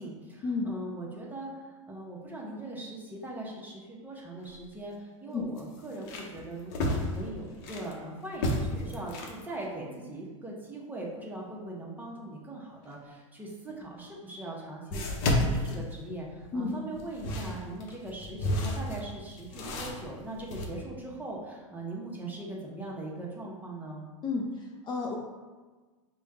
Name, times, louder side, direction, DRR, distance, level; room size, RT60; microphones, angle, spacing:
voice 1, 0.0-24.1, right 2 dB, 10° right, -3 dB, 0.9 m, -40 dB
sound 1, 4.4-4.5 4.9-5.0 5.6-7.9 8.3-9.4 13.7-13.8 14.9-16.5 17.0-20.7, left 1 dB, 60° left, 0.8 m, -32 dB
voice 2, 24.2-25.2, left 4 dB, 25° left, -1 dB, 0.5 m, -31 dB
5.0 x 2.3 x 3.5 m, 1.3 s
hypercardioid pair, 110°, 17 cm